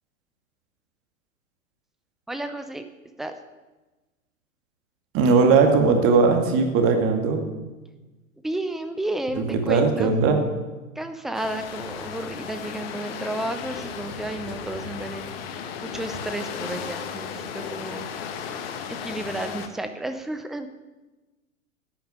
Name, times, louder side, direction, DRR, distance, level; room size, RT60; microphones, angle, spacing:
voice 1, 2.3-2.8 3.2-3.3 8.4-10.1 11.0-15.3 15.8-18.1 18.9-20.7, right 1 dB, ahead, 8 dB, 0.5 m, -32 dB
voice 2, 5.1-7.5 9.5-10.5, right 4 dB, 30° right, 5 dB, 2.1 m, -19 dB
sound 1, 11.3-19.7, left 7 dB, 45° left, 1.6 m, -35 dB
11.5 x 9.0 x 9.8 m, 1.2 s
figure-of-eight pair, 100°, 41 cm